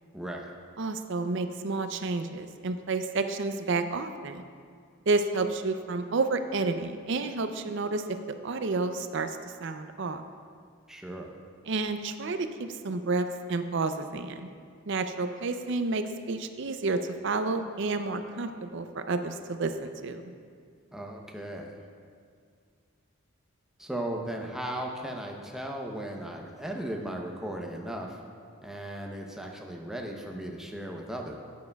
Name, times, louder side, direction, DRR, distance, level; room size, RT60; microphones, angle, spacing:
voice 1, 0.1-0.5 10.9-11.3 20.9-21.8 23.8-28.2 28.6-31.4, right 1 dB, ahead, 0 dB, 0.7 m, -36 dB
voice 2, 0.8-4.4 5.1-8.2 8.4-10.2 11.7-14.4 14.9-20.2, right 3 dB, 55° right, 8 dB, 0.5 m, -30 dB
12.0 x 9.4 x 2.3 m, 2.2 s
head